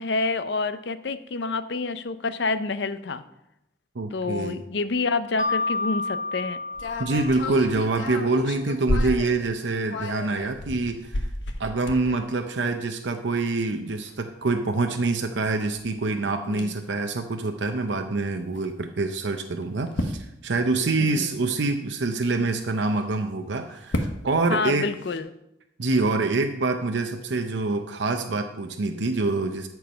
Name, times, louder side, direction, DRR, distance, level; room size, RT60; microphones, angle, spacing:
voice 1, 0.0-3.2 4.1-6.6 16.5-16.7 21.0-21.3 24.5-25.3, left 3 dB, 65° left, 12 dB, 0.6 m, -28 dB
voice 2, 3.9-4.6 7.0-11.2 11.6-24.9 25.8-29.7, right 3 dB, 75° right, 5 dB, 0.7 m, -26 dB
Mallet percussion, 5.4-8.2, left 3 dB, 45° left, 1.0 m, -30 dB
sound 1, 6.7-9.4 9.7-12.4 13.1-13.2 13.5-13.6 14.0-14.1 15.8-15.9 16.5-16.7 17.0-17.1 18.5-18.7 19.6-20.3 22.6-23.0 23.7-24.3 25.0-25.2, left 1 dB, 90° left, 1.1 m, -31 dB
13.5 x 4.7 x 5.6 m, 0.84 s
head